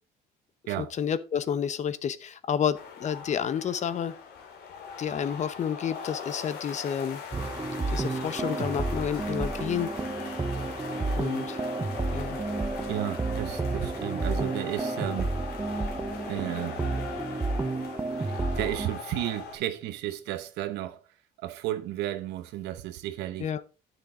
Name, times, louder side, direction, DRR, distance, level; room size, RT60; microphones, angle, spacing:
voice 1, 0.8-4.1 5.0-7.2 7.9-9.9 11.2-11.6 12.1-12.4 23.4-23.6, left 8 dB, 45° left, 0.9 m, -30 dB
sound 1, 2.7-19.6, left 6 dB, 75° left, 2.2 m, -40 dB
sound 2, 7.3-18.9, right 3 dB, 15° right, 0.6 m, -31 dB
voice 2, 12.9-15.3 16.3-16.8 18.3-21.0 21.4-23.5, right 13 dB, 90° right, 0.9 m, -33 dB
10.0 x 6.5 x 3.8 m
cardioid pair, 110°, 17 cm